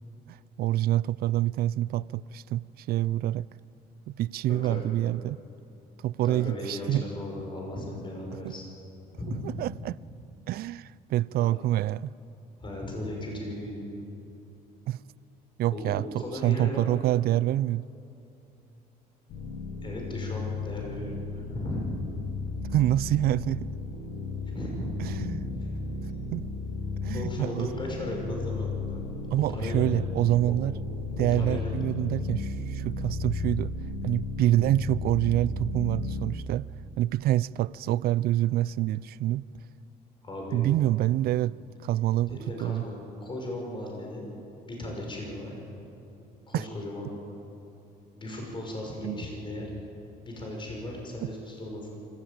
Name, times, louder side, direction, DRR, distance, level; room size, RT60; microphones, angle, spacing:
voice 1, 0.3-3.5 4.1-5.4 6.0-7.0 8.4-8.5 9.6-10.0 10.5-12.1 14.9-15.0 15.6-17.8 22.7-23.8 25.0-25.4 26.3-26.4 27.0-27.7 29.3-30.7 31.2-33.7 34.0-36.7 37.0-39.4 40.5-42.8 46.5-46.6 49.0-49.2 51.2-51.3, right 14 dB, 65° right, 0.4 m, -27 dB
voice 2, 4.5-4.8 6.2-8.6 9.2-9.4 11.4-11.5 12.6-13.8 15.7-16.9 19.8-21.8 24.5-24.9 25.6-26.1 27.1-29.0 29.3-29.9 30.4-30.5 31.2-31.7 40.2-40.6 42.3-44.2 44.6-45.6 46.5-47.1 48.1-49.7 50.2-51.9, left 1 dB, 30° left, 5.9 m, -36 dB
sound 1, 19.3-36.2, left 3 dB, 85° left, 7.0 m, -34 dB
25.0 x 14.5 x 8.8 m
cardioid pair, 110°, 17 cm